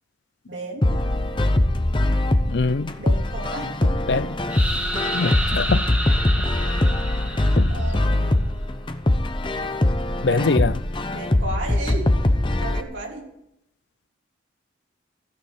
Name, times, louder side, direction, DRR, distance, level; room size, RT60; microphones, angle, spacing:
voice 1, 0.5-1.1 3.0-4.3 5.4-5.8 6.7-7.0 7.7-8.4 10.2-10.6 11.1-12.1 12.6-13.3, right 2 dB, 80° right, 3.5 m, -34 dB
sound 1, 0.8-12.8, left 1 dB, 25° left, 0.8 m, -22 dB
voice 2, 2.5-2.9 4.1-4.2 5.1-5.8 7.6-7.7 10.2-10.7, left 4 dB, 65° left, 0.5 m, -22 dB
sound 2, 4.5-8.3, right 1 dB, 10° right, 1.8 m, -30 dB
15.0 x 6.8 x 9.7 m
head